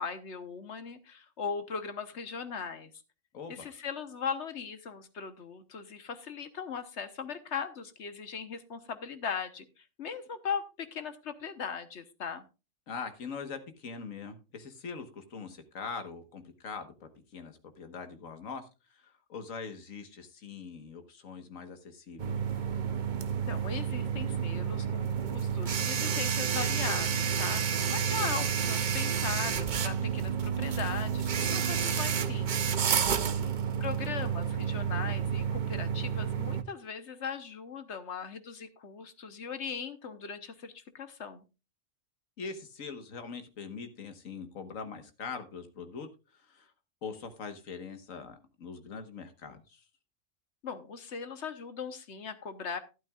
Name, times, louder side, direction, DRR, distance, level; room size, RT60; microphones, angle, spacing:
voice 1, 0.0-2.9 3.5-12.4 23.5-32.9 33.8-41.4 50.6-52.8, left 6 dB, 60° left, 10 dB, 1.3 m, -39 dB
voice 2, 3.3-3.7 12.9-22.3 33.1-33.5 42.4-46.7 47.0-49.8, left 5 dB, 90° left, 8 dB, 1.7 m, -42 dB
sound 1, 22.2-36.6, right 7 dB, 45° right, 0.7 m, -30 dB
12.0 x 12.0 x 2.4 m, 0.29 s
omnidirectional pair, 1.3 m